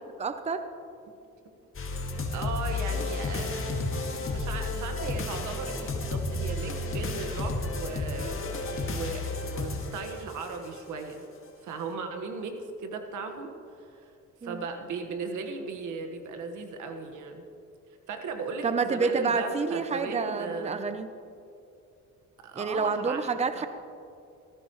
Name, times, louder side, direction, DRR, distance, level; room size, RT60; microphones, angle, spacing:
voice 1, 0.2-0.7 14.4-14.6 18.6-21.1 22.5-23.7, right 4 dB, 20° right, 10 dB, 0.7 m, -28 dB
sound 1, 1.7-10.8, left 3 dB, 45° left, 2.1 m, -32 dB
voice 2, 2.3-3.6 4.2-8.4 8.9-11.2 11.6-14.1 14.4-17.4 18.1-20.8 22.4-23.2 23.5-23.7, right 4 dB, 80° right, 5 dB, 1.6 m, -36 dB
18.5 x 15.0 x 3.2 m, 2.6 s
cardioid pair, 90°, 30 cm